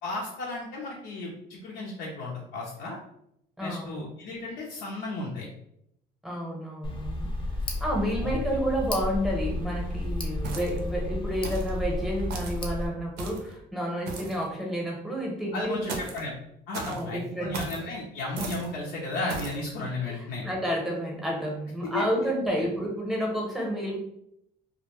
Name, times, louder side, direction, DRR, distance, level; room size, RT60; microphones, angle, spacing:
voice 1, 0.0-3.0 3.6-5.5 8.2-8.3 15.5-16.3 16.7-20.4 21.9-22.0, left 2 dB, 80° left, -4 dB, 0.5 m, -34 dB
voice 2, 3.6-4.1 6.2-7.3 7.8-16.0 16.8-17.9 20.1-24.0, equal, ahead, -2 dB, 0.7 m, -30 dB
Tick, 6.8-12.9, left 1 dB, 30° left, 0.5 m, -32 dB
sound 1, 10.4-10.9 11.4-11.8 12.3-12.6 13.2-13.5 14.1-14.4 15.9-16.3 16.7-17.0 17.5-17.8 18.4-18.7 19.3-19.6, right 3 dB, 75° right, 0.5 m, -36 dB
2.1 x 2.1 x 2.9 m, 0.76 s
cardioid pair, 110°, 17 cm